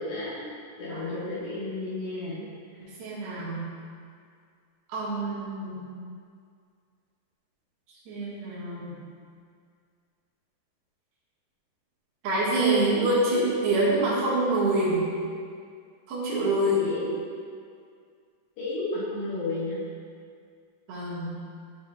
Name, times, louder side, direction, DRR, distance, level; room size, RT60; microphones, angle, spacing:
voice 1, 0.0-2.4 2.8-2.9 16.7-17.2 18.6-19.8, left 2 dB, 75° left, -10 dB, 4.1 m, -33 dB
voice 2, 0.9-1.3 2.8-3.6 4.9-5.8 8.1-9.0 12.2-15.1 16.1-16.9 20.9-21.3, right 1 dB, 75° right, -8 dB, 3.7 m, -26 dB
12.0 x 5.2 x 2.5 m, 2.2 s
omnidirectional pair, 4.9 m